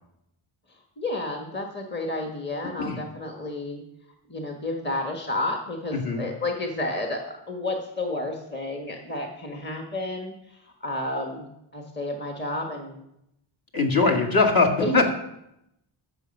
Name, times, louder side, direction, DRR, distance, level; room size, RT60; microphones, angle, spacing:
voice 1, 0.7-3.8 4.3-11.5 11.7-13.0 14.8-15.1, left 2 dB, 20° left, 2 dB, 1.4 m, -31 dB
voice 2, 5.9-6.2 13.7-15.1, left 3 dB, 45° left, 2 dB, 2.1 m, -21 dB
14.5 x 7.0 x 5.4 m, 0.82 s
wide cardioid pair, 130°, 48 cm